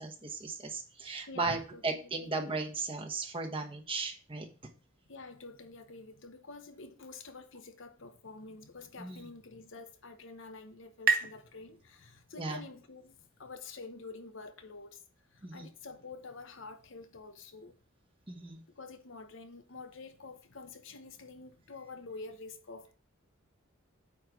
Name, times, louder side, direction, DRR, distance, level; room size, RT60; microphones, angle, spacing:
voice 1, 0.0-4.5 9.0-9.2 12.4-12.6 15.4-15.7 18.3-18.6, right 3 dB, 25° right, 1.1 m, -36 dB
voice 2, 1.3-2.4 4.4-4.6 5.1-15.0 15.3-17.8 18.7-22.9, left 3 dB, 65° left, 0.9 m, -48 dB
sound 1, 9.6-13.0, right 5 dB, 50° right, 0.8 m, -36 dB
8.7 x 3.2 x 6.1 m
head